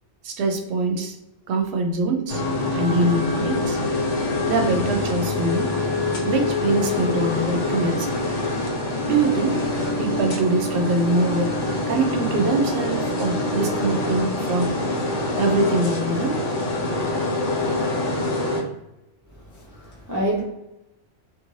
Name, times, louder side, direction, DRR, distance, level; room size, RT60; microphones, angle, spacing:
voice 1, 0.2-1.2 1.5-2.4 2.7-3.8 4.5-5.7 6.2-8.3 9.0-9.6 10.0-11.5 11.9-14.7 15.3-16.4, right 3 dB, 70° right, 4 dB, 0.8 m, -23 dB
sound 1, 2.3-18.6, left 2 dB, 80° left, 1.1 m, -25 dB
voice 2, 19.4-20.4, right 1 dB, 25° right, -5 dB, 0.4 m, -28 dB
2.5 x 2.5 x 3.0 m, 0.92 s
omnidirectional pair, 1.2 m